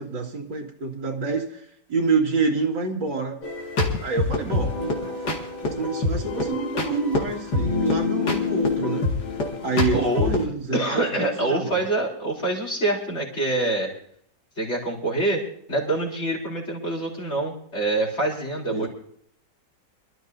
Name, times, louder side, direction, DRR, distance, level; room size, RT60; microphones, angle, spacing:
voice 1, 0.0-3.4 4.0-5.2 5.6-9.1 9.6-11.8 18.7-18.9, right 4 dB, 90° right, 0 dB, 2.8 m, -27 dB
sound 1, 3.4-10.4, left 3 dB, 70° left, 2.6 m, -26 dB
voice 2, 9.9-10.3 10.7-13.9 14.6-15.4 15.7-18.9, right 2 dB, 35° left, -3 dB, 4.2 m, -25 dB
26.5 x 13.0 x 2.7 m, 0.66 s
omnidirectional pair, 1.9 m